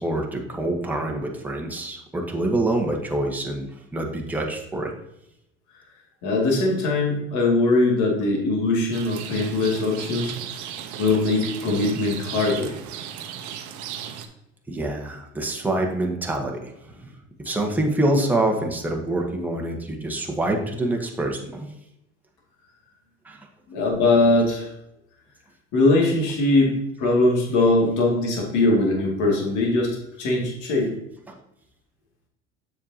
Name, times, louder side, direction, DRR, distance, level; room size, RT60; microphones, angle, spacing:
voice 1, 0.0-4.9 14.7-17.1 17.4-21.7 23.2-23.5 31.3-31.4, right 1 dB, 5° right, 0 dB, 1.3 m, -26 dB
voice 2, 6.2-10.3 11.0-12.7 23.7-24.7 25.7-26.7 27.0-29.9 30.2-30.9, left 2 dB, 55° left, -1 dB, 2.4 m, -21 dB
Rain, 8.9-14.3, right 9 dB, 55° right, 0.9 m, -35 dB
7.2 x 6.6 x 2.9 m, 0.83 s
hypercardioid pair, 80°, 35 cm